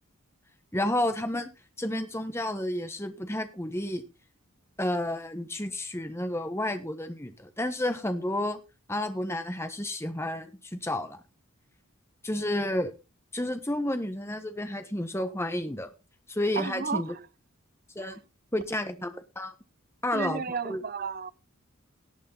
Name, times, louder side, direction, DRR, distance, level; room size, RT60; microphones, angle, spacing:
voice 1, 0.7-1.5 1.8-4.0 4.8-8.6 8.9-11.2 12.2-12.9 13.3-15.9 16.3-17.1 17.9-18.2 18.5-19.5 20.0-20.8, left 1 dB, 10° left, 1.2 m, -31 dB
voice 2, 16.6-17.0 18.0-18.2 20.1-21.3, right 5 dB, 40° right, 0.5 m, -33 dB
18.0 x 6.7 x 3.9 m
head